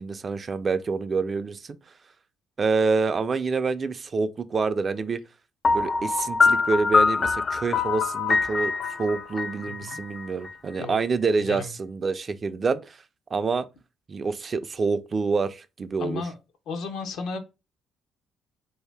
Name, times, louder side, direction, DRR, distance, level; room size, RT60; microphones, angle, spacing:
voice 1, 0.0-1.8 2.6-5.2 5.7-8.7 9.0-13.0 13.3-13.7 14.1-16.2, right 4 dB, 35° right, 0.3 m, -27 dB
Piano, 5.6-10.5, left 4 dB, 40° left, 0.3 m, -23 dB
voice 2, 9.6-10.0 10.8-11.1 11.4-11.7 16.0-16.4 16.7-17.4, left 4 dB, 75° left, 0.7 m, -34 dB
3.1 x 2.7 x 3.3 m
cardioid pair, 85°, 0 cm